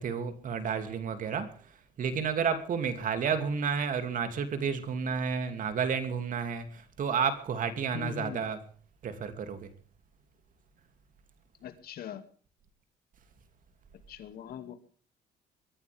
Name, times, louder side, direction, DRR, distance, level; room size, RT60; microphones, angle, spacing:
voice 1, 0.0-1.5 2.0-8.6 9.0-9.7, right 6 dB, 50° right, 9 dB, 2.9 m, -31 dB
voice 2, 7.9-8.4 11.6-12.2 14.1-14.7, left 9 dB, 65° left, 9 dB, 2.5 m, -41 dB
23.0 x 14.0 x 3.6 m, 0.43 s
cardioid pair, 110°, 17 cm